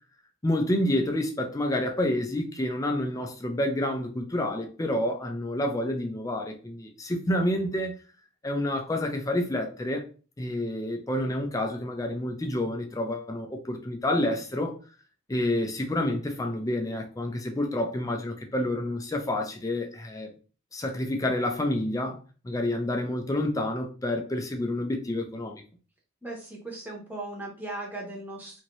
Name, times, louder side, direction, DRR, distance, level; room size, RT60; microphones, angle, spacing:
voice 1, 0.4-8.0 8.4-10.0 10.4-14.8 15.3-20.3 20.7-22.2 22.4-25.6, left 1 dB, 15° left, 0.4 m, -28 dB
voice 2, 26.2-28.6, right 2 dB, 10° right, 0.8 m, -38 dB
2.8 x 2.6 x 3.0 m
head